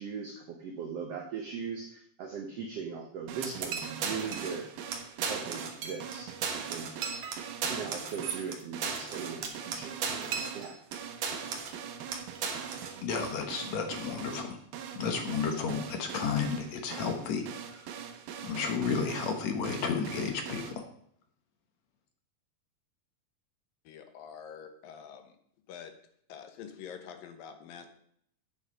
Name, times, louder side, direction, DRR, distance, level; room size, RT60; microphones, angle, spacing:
voice 1, 0.0-4.7 5.2-6.4 6.7-6.9 7.7-10.0 10.5-10.8, right 6 dB, 75° right, 3 dB, 1.4 m, -39 dB
sound 1, 3.3-20.7, right 8 dB, 90° right, 2.8 m, -43 dB
sound 2, 3.4-4.6 4.9-5.0 5.2-6.2 6.4-11.0 11.2-11.8 12.1-13.0, right 5 dB, 60° right, 2.0 m, -35 dB
voice 2, 13.0-14.6 15.0-17.4 17.7-17.9 18.4-20.7, left 6 dB, 60° left, 5 dB, 2.0 m, -32 dB
voice 3, 23.9-25.4 25.7-25.9 26.3-27.9, left 7 dB, 80° left, 7 dB, 2.8 m, -46 dB
8.7 x 8.2 x 5.2 m, 0.66 s
omnidirectional pair, 4.0 m